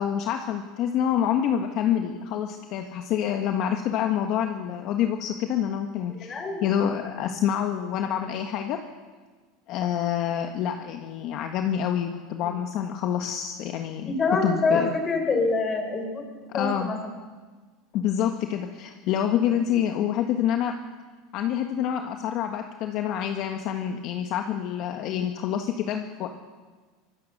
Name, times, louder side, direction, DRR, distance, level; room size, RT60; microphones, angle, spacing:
voice 1, 0.0-6.4 6.6-8.8 9.7-14.1 14.4-14.9 16.5-16.9 17.9-20.7 21.3-26.3, left 9 dB, 50° left, 4 dB, 1.5 m, -27 dB
voice 2, 6.2-6.6 12.5-12.6 14.0-16.2 16.5-17.1, left 3 dB, 25° left, 5 dB, 4.7 m, -26 dB
24.5 x 19.0 x 6.7 m, 1.4 s
supercardioid pair, 135°, 0 cm